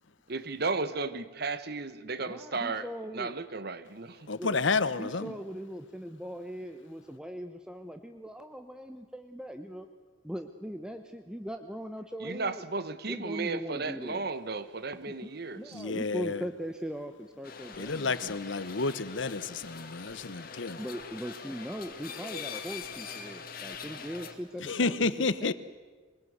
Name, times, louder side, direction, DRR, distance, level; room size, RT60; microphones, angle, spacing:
voice 1, 0.3-2.9 3.1-4.3 12.2-15.8, right 3 dB, 55° right, 1.2 m, -34 dB
voice 2, 2.2-3.3 4.4-4.6 5.0-9.9 10.2-12.6 13.1-14.3 15.1-15.2 15.5-18.4 20.8-25.1 25.4-25.5, equal, 5° right, 0.9 m, -40 dB
voice 3, 4.3-5.3 15.7-16.4 17.8-20.8 24.6-25.5, left 4 dB, 75° left, 1.1 m, -30 dB
sound 1, 17.4-24.3, left 5 dB, 50° left, 2.0 m, -43 dB
23.5 x 20.5 x 8.0 m
head